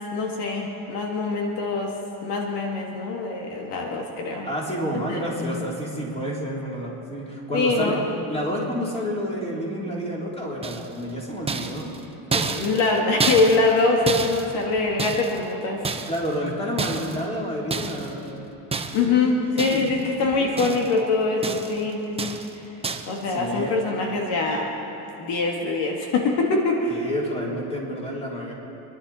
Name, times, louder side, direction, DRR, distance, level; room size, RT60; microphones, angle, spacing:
voice 1, 0.1-1.9 2.2-4.5 5.1-5.2 7.5-8.0 12.5-15.8 18.9-22.4 23.1-24.7 25.2-27.1, left 3 dB, 70° left, 0 dB, 2.1 m, -23 dB
voice 2, 4.4-8.0 8.3-12.0 12.3-12.5 16.1-18.4 19.0-20.0 20.4-20.8 23.2-23.7 26.9-28.6, equal, 15° left, -3 dB, 3.6 m, -30 dB
sound 1, 10.6-11.1 11.5-15.5 15.8-16.4 16.8-17.3 17.7-18.1 18.7-19.2 19.6-20.1 20.3-21.0 21.4-21.8 22.2-22.5 22.8-23.2, right 4 dB, 15° right, 0.9 m, -29 dB
26.5 x 11.5 x 4.3 m, 3.0 s
cardioid pair, 115°, 42 cm